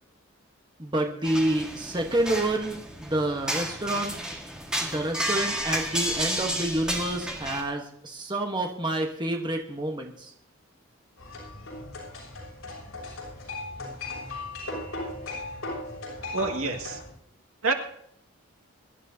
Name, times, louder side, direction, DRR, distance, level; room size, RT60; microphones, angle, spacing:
voice 1, 0.8-4.2 4.8-10.3, right 1 dB, 20° right, 2 dB, 1.1 m, -28 dB
sound 1, 1.2-7.6, equal, 5° right, 1.6 m, -32 dB
sound 2, 11.2-17.1, left 2 dB, 80° left, 6.4 m, -37 dB
voice 2, 16.3-17.0 17.6-17.7, right 3 dB, 75° right, 3 dB, 2.0 m, -27 dB
23.5 x 11.5 x 2.8 m, 0.69 s
head